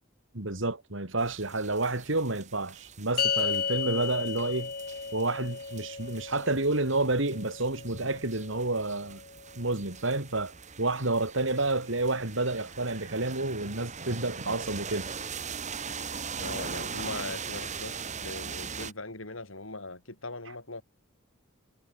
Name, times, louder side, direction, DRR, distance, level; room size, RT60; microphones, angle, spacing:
voice 1, 0.3-4.7 5.1-9.2 9.6-15.1, right 2 dB, 70° right, 3.1 m, -30 dB
sound 1, 1.2-18.9, right 6 dB, 35° right, 3.0 m, -41 dB
sound 2, 3.2-9.7, left 6 dB, 50° left, 1.8 m, -35 dB
voice 2, 16.4-20.8, left 2 dB, 80° left, 7.0 m, -40 dB
head